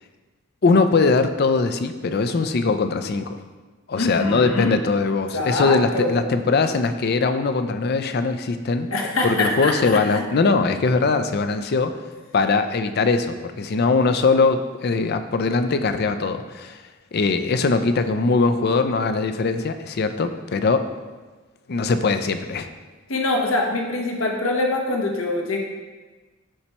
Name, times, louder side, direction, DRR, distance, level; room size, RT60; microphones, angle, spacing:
voice 1, 0.6-3.4 3.9-8.9 9.2-12.0 12.3-16.8 17.1-20.9 21.7-22.7, left 4 dB, 50° left, 9 dB, 0.4 m, -21 dB
voice 2, 4.0-4.7 5.3-6.2 8.9-10.2 23.1-25.6, left 2 dB, 80° left, 1 dB, 0.9 m, -24 dB
11.0 x 4.3 x 2.9 m, 1.3 s
head